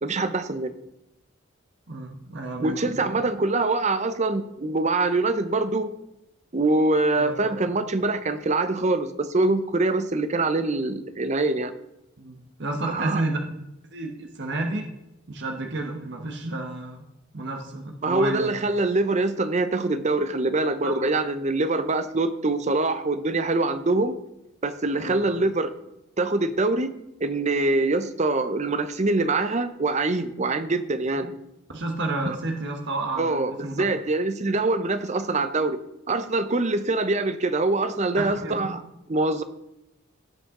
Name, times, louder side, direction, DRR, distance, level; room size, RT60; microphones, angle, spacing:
voice 1, 0.0-0.7 2.6-5.9 6.5-11.7 12.9-13.2 18.0-24.2 24.6-25.7 26.2-26.9 27.2-31.4 33.2-35.8 36.1-38.8 39.1-39.4, right 2 dB, 35° right, 11 dB, 0.7 m, -24 dB
voice 2, 1.9-3.0 7.2-7.3 12.2-13.5 13.9-14.9 15.3-17.1 17.3-18.6 20.8-21.2 25.0-25.2 31.7-33.7 38.2-38.6, right 2 dB, 60° right, 3 dB, 1.2 m, -31 dB
16.5 x 5.6 x 3.7 m, 0.88 s
head